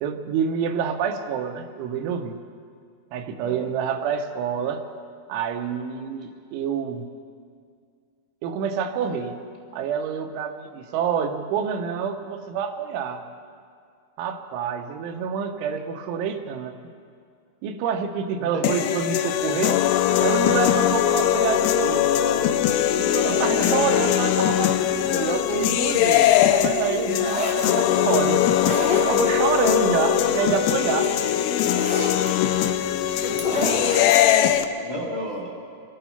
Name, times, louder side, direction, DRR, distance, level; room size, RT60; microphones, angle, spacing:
voice 1, 0.0-2.4 3.1-4.8 5.3-7.1 8.4-9.4 9.7-13.3 14.2-16.8 17.6-19.8 20.2-22.2 23.0-28.4 28.9-31.1, right 7 dB, 85° right, 6 dB, 3.3 m, -27 dB
voice 2, 3.4-3.7 18.5-19.0 23.2-23.9 27.6-28.1 33.2-34.0 34.8-35.6, right 1 dB, 30° left, -3 dB, 0.7 m, -32 dB
sound 1, 18.6-34.6, left 11 dB, 90° left, 3.1 m, -21 dB
sound 2, 27.1-27.7 28.4-29.5 30.6-30.7 31.0-32.3 33.2-34.2, left 1 dB, 5° right, 0.7 m, -29 dB
25.5 x 9.2 x 5.7 m, 2.3 s
omnidirectional pair, 5.4 m